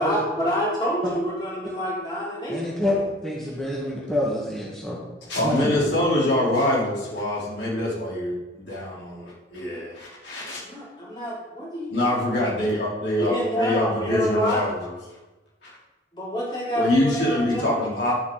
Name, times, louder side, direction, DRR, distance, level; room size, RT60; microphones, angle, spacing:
voice 1, 0.0-2.6 10.6-12.2 13.2-14.6 16.1-17.8, equal, 25° left, -7 dB, 3.7 m, -27 dB
voice 2, 2.5-2.9 3.2-5.0 5.4-5.8, left 1 dB, 5° left, -6 dB, 1.6 m, -27 dB
voice 3, 5.3-10.6 11.9-14.9 15.6-15.7 16.8-18.1, left 1 dB, 75° left, -6 dB, 3.5 m, -25 dB
10.5 x 7.3 x 3.9 m, 1.1 s
head